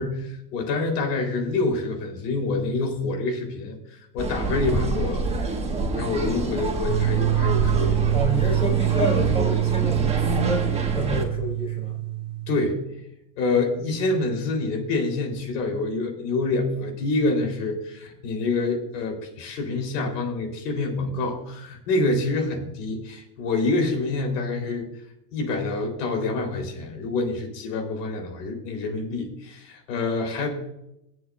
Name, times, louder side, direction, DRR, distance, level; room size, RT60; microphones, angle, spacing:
voice 1, 0.0-5.2 5.9-8.1 12.5-12.8 13.4-24.9 25.3-30.5, left 3 dB, 80° left, 3 dB, 3.9 m, -27 dB
sound 1, 4.2-11.2, right 2 dB, 15° right, 1.6 m, -27 dB
sound 2, 6.9-12.7, right 16 dB, 65° right, 1.1 m, -25 dB
voice 2, 8.1-12.0 22.0-22.2, equal, 15° left, -1 dB, 4.3 m, -29 dB
23.5 x 7.8 x 2.5 m, 0.83 s
supercardioid pair, 120°, 47 cm